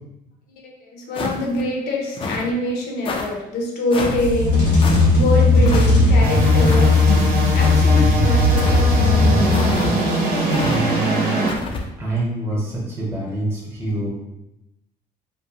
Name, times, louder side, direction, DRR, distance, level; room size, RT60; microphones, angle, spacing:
voice 1, 0.8-4.8 5.1-7.2 7.5-9.0 10.3-10.5, left 1 dB, 70° left, -1 dB, 0.7 m, -24 dB
sound 1, 1.1-1.6 2.2-2.5 3.1-3.3 3.9-4.2 4.8-5.0 5.6-5.9 6.6-6.9 7.5-8.0 8.6-8.9 9.5-9.9 10.5-10.8 11.5-11.8, left 3 dB, 30° left, 0.3 m, -28 dB
sound 2, 4.1-10.1, left 3 dB, 90° left, 1.1 m, -16 dB
sound 3, 6.2-11.5, right 1 dB, 60° right, 0.7 m, -22 dB
voice 2, 10.4-11.4 12.0-14.1, right 2 dB, 15° right, -4 dB, 0.8 m, -26 dB
2.5 x 2.1 x 2.7 m, 0.92 s
cardioid pair, 110°, 17 cm